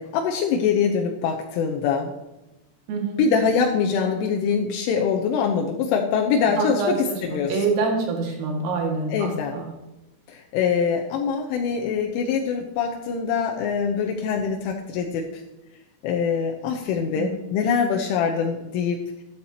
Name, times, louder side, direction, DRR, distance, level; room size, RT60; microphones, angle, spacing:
voice 1, 0.0-2.1 3.2-7.6 9.1-9.6 10.3-15.3 16.0-19.0, left 6 dB, 80° left, 1 dB, 3.3 m, -24 dB
voice 2, 2.9-3.2 6.6-9.7 17.2-17.4, right 4 dB, 85° right, 0 dB, 4.7 m, -26 dB
13.0 x 13.0 x 2.9 m, 0.98 s
omnidirectional pair, 5.7 m